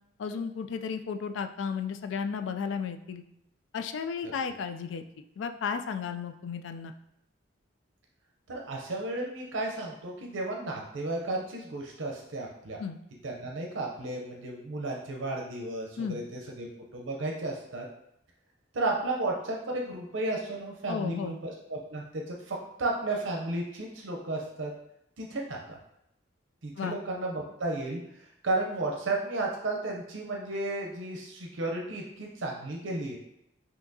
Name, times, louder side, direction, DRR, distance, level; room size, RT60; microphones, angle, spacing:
voice 1, 0.2-3.2 3.7-5.1 5.4-6.9 12.8-13.0 16.0-16.2 20.9-21.4 26.8-27.0, left 6 dB, 70° left, 8 dB, 0.4 m, -34 dB
voice 2, 8.5-12.8 13.2-16.7 16.9-17.9 18.7-24.7 25.2-25.8 26.6-28.0 28.4-33.2, right 2 dB, 80° right, -1 dB, 0.6 m, -33 dB
5.7 x 2.8 x 2.7 m, 0.81 s
head